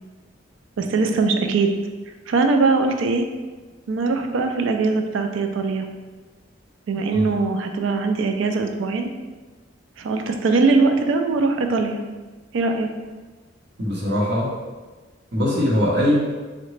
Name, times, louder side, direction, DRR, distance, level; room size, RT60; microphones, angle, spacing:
voice 1, 0.8-1.7 2.3-3.2 3.9-5.8 6.9-9.1 10.0-12.0 12.5-12.9, right 3 dB, 80° right, 5 dB, 0.4 m, -21 dB
voice 2, 6.9-7.3 13.8-14.5 15.3-16.2, left 1 dB, 65° right, -4 dB, 0.8 m, -21 dB
3.7 x 2.1 x 3.1 m, 1.3 s
head